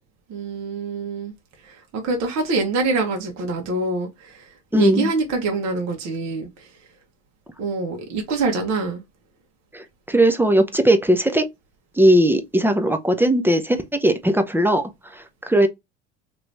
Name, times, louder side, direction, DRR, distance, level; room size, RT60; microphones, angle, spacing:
voice 1, 0.3-1.3 1.9-4.3 4.7-6.5 7.6-9.0, right 3 dB, 50° right, 1.1 m, -25 dB
voice 2, 4.7-5.1 9.7-11.5 12.0-15.7, right 1 dB, 5° right, 0.5 m, -19 dB
3.0 x 2.6 x 3.2 m
hypercardioid pair, 75°, 35 cm